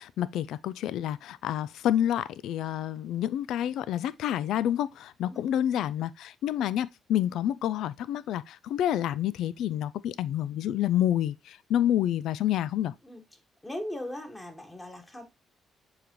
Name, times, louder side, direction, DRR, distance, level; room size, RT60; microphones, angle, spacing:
voice 1, 0.0-12.9, left 11 dB, 80° left, 0.3 m, -28 dB
voice 2, 13.6-15.2, left 1 dB, 15° left, 1.6 m, -38 dB
7.1 x 4.9 x 3.0 m
cardioid pair, 90°, 0 cm